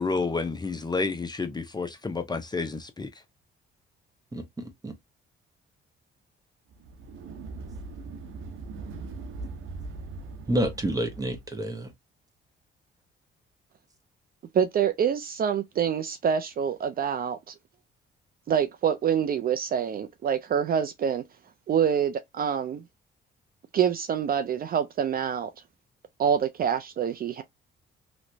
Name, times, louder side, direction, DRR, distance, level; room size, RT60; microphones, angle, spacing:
voice 1, 0.0-3.1, left 4 dB, 20° left, 0.6 m, -30 dB
voice 2, 4.3-4.9 10.5-11.9, right 1 dB, 20° right, 1.1 m, -29 dB
sound 1, 6.7-11.6, right 3 dB, 85° right, 0.8 m, -40 dB
voice 3, 14.5-17.5 18.5-21.2 21.7-22.8 23.7-25.5 26.2-27.4, right 8 dB, 50° right, 0.4 m, -26 dB
3.0 x 3.0 x 2.6 m
cardioid pair, 90°, 20 cm